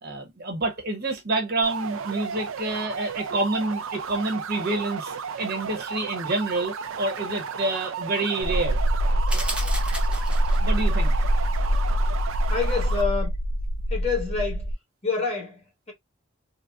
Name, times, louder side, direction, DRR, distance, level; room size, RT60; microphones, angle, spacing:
voice 1, 0.0-8.8 10.6-11.1, right 2 dB, 50° right, 0.8 m, -28 dB
sound 1, 1.6-13.0, right 6 dB, 75° right, 0.4 m, -34 dB
sound 2, 8.4-14.7, equal, 55° left, 0.4 m, -24 dB
sound 3, 9.3-10.7, right 1 dB, 5° right, 0.5 m, -34 dB
voice 2, 12.5-13.3 13.9-14.7 15.0-15.9, left 4 dB, 30° left, 1.3 m, -27 dB
3.8 x 2.1 x 2.3 m
head